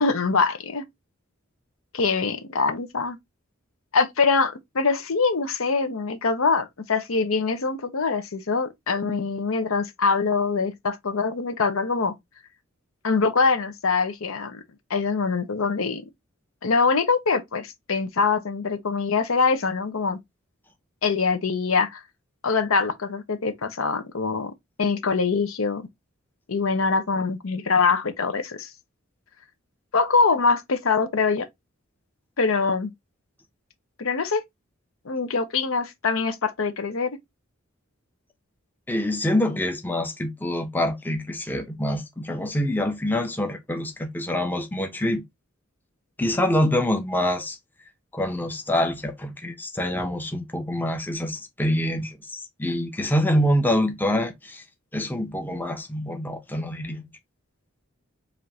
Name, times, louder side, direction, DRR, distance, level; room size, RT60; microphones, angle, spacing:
voice 1, 0.0-0.8 1.9-3.2 3.9-12.1 13.0-14.6 14.9-16.0 16.6-20.2 21.0-22.0 22.4-24.5 24.8-25.9 26.5-28.7 29.9-31.5 32.4-32.9 34.0-34.4 35.1-37.2, left 4 dB, 70° left, 0.7 m, -23 dB
voice 2, 38.9-45.2 46.2-47.6 48.1-54.6 54.9-57.0, left 1 dB, 10° left, 0.6 m, -25 dB
5.0 x 2.5 x 2.8 m
head